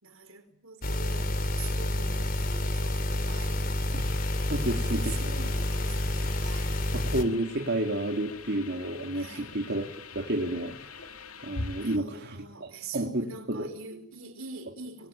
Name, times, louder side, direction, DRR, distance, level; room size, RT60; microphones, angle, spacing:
voice 1, 0.0-4.0 4.4-6.8 9.1-9.5 11.8-15.1, right 4 dB, 70° right, 4.7 m, -45 dB
sound 1, 0.8-7.2, left 1 dB, 40° left, 2.9 m, -29 dB
sound 2, 4.0-12.0, left 3 dB, 80° left, 2.4 m, -44 dB
voice 2, 4.5-5.1 6.9-10.8 11.4-13.7, right 1 dB, 50° right, 3.1 m, -31 dB
26.0 x 24.0 x 9.2 m
head